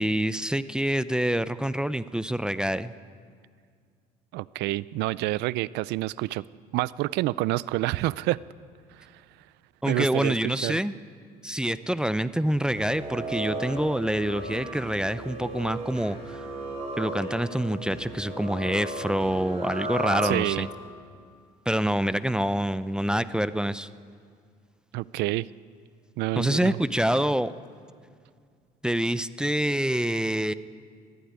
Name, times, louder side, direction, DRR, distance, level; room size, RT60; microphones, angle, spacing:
voice 1, 0.0-2.9 9.8-10.9 11.4-16.4 17.0-20.7 21.7-23.9 26.4-27.5 28.8-30.5, right 1 dB, 5° right, 14 dB, 0.5 m, -26 dB
voice 2, 4.3-6.4 6.7-8.4 9.0-9.1 9.9-10.3 10.6-10.8 20.2-20.7 24.9-25.5 26.2-26.8, right 18 dB, 90° right, 20 dB, 0.4 m, -28 dB
sound 1, 12.6-20.8, right 1 dB, 40° right, 6.3 m, -35 dB
20.0 x 14.0 x 9.6 m, 2.1 s
cardioid pair, 110°, 17 cm